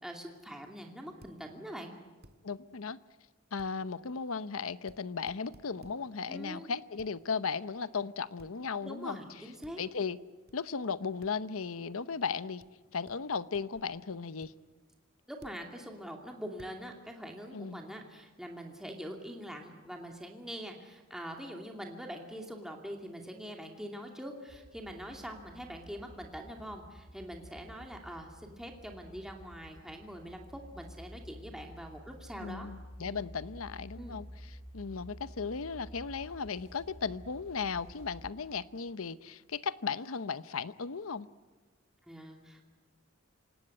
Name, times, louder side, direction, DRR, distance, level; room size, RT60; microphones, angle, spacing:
voice 1, 0.0-1.9 6.3-6.7 8.8-9.8 15.3-32.7 33.0-33.2 34.0-34.2 42.1-42.6, equal, ahead, 2.5 m, -44 dB
sound 1, 1.2-1.4 2.2-2.4 3.6-3.7 4.9-5.0 5.3-6.0 7.0-7.1 8.4-8.6 9.6-9.8 10.5-10.6 11.2-11.3 12.6-12.7 13.1-13.2 13.5-13.9 14.4-14.5 15.4-15.6 16.6-16.8, right 1 dB, 50° right, 1.7 m, -56 dB
voice 2, 2.4-3.0 3.5-9.2 9.8-10.2 10.5-12.6 12.9-14.5 17.5-17.8 32.4-34.3 34.7-41.3, left 5 dB, 90° left, 0.8 m, -36 dB
sound 2, 24.5-38.3, equal, 35° left, 3.5 m, -51 dB
27.5 x 18.0 x 9.8 m
head